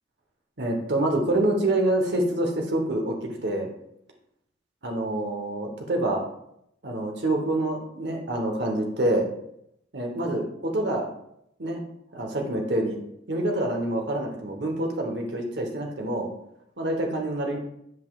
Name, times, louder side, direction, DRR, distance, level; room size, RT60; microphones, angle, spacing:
voice 1, 0.6-3.7 4.8-6.2 6.8-9.3 9.9-11.1 11.6-11.8 12.1-13.0 13.3-16.3 16.8-17.6, right 1 dB, 60° right, 2 dB, 1.1 m, -26 dB
7.8 x 5.3 x 2.4 m, 0.76 s
head